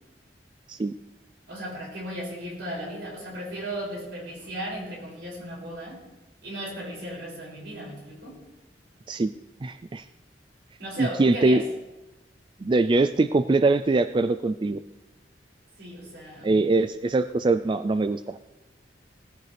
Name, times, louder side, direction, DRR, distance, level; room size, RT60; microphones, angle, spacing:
voice 1, 1.5-6.0 6.4-8.4 10.8-11.6 15.8-16.5, right 1 dB, 75° right, -3 dB, 6.2 m, -36 dB
voice 2, 9.6-10.1 11.0-11.6 12.6-14.8 16.4-18.4, right 3 dB, 30° right, 10 dB, 0.3 m, -23 dB
20.0 x 15.0 x 3.4 m, 1.1 s
head